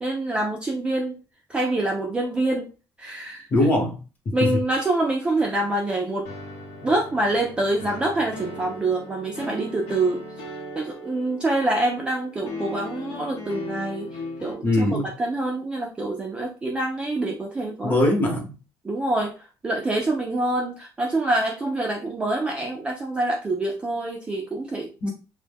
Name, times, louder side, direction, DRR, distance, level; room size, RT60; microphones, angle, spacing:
voice 1, 0.0-1.2 1.5-2.7 3.0-3.5 4.3-6.3 6.8-17.9 18.8-25.1, right 2 dB, 15° right, -1 dB, 0.3 m, -26 dB
voice 2, 3.5-4.0 6.8-6.9 14.6-15.1 17.8-18.5 25.0-25.1, left 1 dB, 20° left, 1 dB, 0.8 m, -21 dB
sound 1, 6.3-14.5, left 1 dB, 85° left, 0.9 m, -38 dB
2.1 x 2.1 x 3.3 m, 0.32 s
cardioid pair, 155°, 8 cm